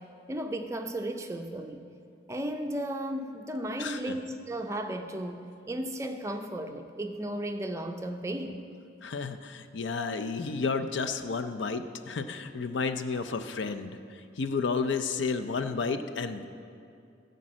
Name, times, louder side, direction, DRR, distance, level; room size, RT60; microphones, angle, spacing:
voice 1, 0.3-1.9 2.3-8.6, right 1 dB, 15° right, 5 dB, 0.4 m, -35 dB
voice 2, 3.8-4.2 9.0-14.0 14.4-16.4, left 4 dB, 85° left, 8 dB, 0.5 m, -31 dB
14.0 x 5.3 x 7.5 m, 2.5 s
head